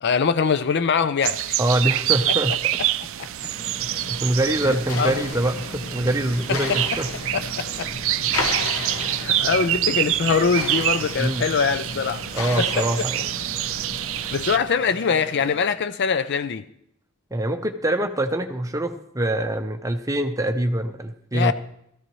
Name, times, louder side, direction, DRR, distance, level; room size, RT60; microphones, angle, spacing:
voice 1, 0.0-1.6 3.2-3.3 4.7-5.2 6.7-6.8 7.3-7.9 9.0-12.2 12.6-12.9 14.3-16.6 21.3-21.5, left 5 dB, 50° left, 13 dB, 0.5 m, -23 dB
sound 1, 1.2-14.6, right 14 dB, 65° right, 0.4 m, -26 dB
voice 2, 1.6-2.6 4.1-7.1 11.2-11.5 12.3-13.3 17.3-21.5, right 1 dB, 15° right, 6 dB, 0.7 m, -24 dB
sound 2, 3.2-14.7, left 3 dB, 75° left, 1.0 m, -34 dB
sound 3, 3.5-15.5, equal, 25° left, 5.8 m, -42 dB
16.5 x 14.0 x 3.1 m, 0.75 s
head